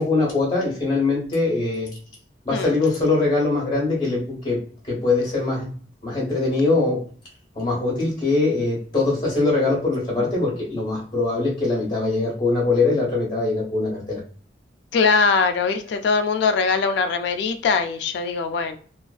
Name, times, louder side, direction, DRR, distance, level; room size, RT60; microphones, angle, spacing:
voice 1, 0.0-1.9 2.4-4.6 4.9-5.7 6.0-7.0 7.5-14.2, left 3 dB, 25° left, -4 dB, 1.1 m, -22 dB
voice 2, 14.9-18.8, left 5 dB, 75° left, 8 dB, 0.3 m, -21 dB
2.4 x 2.4 x 2.3 m, 0.43 s
head